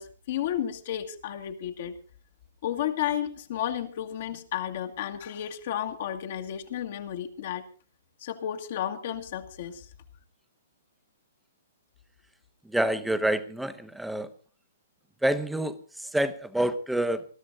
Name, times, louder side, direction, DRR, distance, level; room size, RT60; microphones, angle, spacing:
voice 1, 0.0-1.9 2.6-7.7 8.2-9.9, left 10 dB, 55° left, 3 dB, 1.8 m, -32 dB
voice 2, 12.6-14.3 15.2-17.3, right 1 dB, 5° right, 12 dB, 1.1 m, -27 dB
21.0 x 13.0 x 4.0 m, 0.37 s
hypercardioid pair, 125°, 0 cm